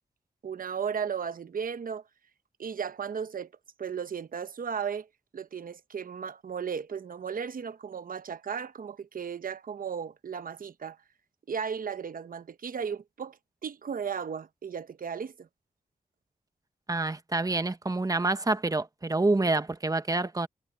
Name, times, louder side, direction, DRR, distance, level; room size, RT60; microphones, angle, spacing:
voice 1, 0.4-2.0 2.6-3.5 3.8-5.1 5.3-11.0 11.5-15.5, right 7 dB, 60° right, 0.9 m, -35 dB
voice 2, 16.9-20.5, right 2 dB, 20° right, 1.1 m, -27 dB
wide cardioid pair, 80°, 16 cm